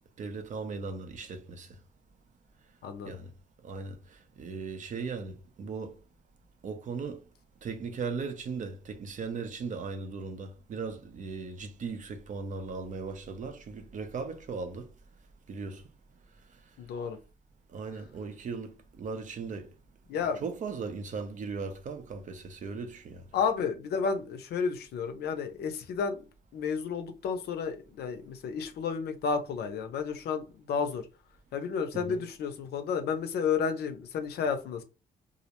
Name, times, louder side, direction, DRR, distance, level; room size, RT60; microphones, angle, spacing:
voice 1, 0.2-1.7 3.1-3.3 3.6-6.0 6.6-7.2 7.6-14.9 15.5-15.8 17.7-19.7 20.4-23.2 31.9-32.2, right 4 dB, 50° right, 0.5 m, -38 dB
voice 2, 2.8-3.2 16.8-17.2 20.1-20.4 23.3-26.2 26.5-31.0 31.5-34.8, left 6 dB, 75° left, 0.5 m, -31 dB
2.4 x 2.0 x 2.8 m
cardioid pair, 95°, 17 cm